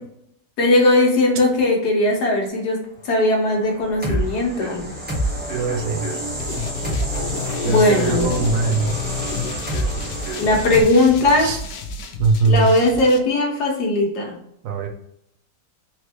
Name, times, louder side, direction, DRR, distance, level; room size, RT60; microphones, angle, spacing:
voice 1, 0.6-4.9 7.7-8.3 10.4-11.5 12.5-14.4, left 2 dB, 70° left, 0 dB, 1.7 m, -18 dB
sound 1, 3.5-10.8, right 1 dB, 5° right, 1.1 m, -28 dB
voice 2, 5.5-6.1 7.6-8.9 11.4-11.6 12.2-12.7 14.6-14.9, right 3 dB, 60° right, 5 dB, 1.0 m, -21 dB
sound 2, 6.4-13.2, left 4 dB, 90° left, 1.3 m, -31 dB
4.4 x 3.3 x 3.0 m, 0.72 s
omnidirectional pair, 1.8 m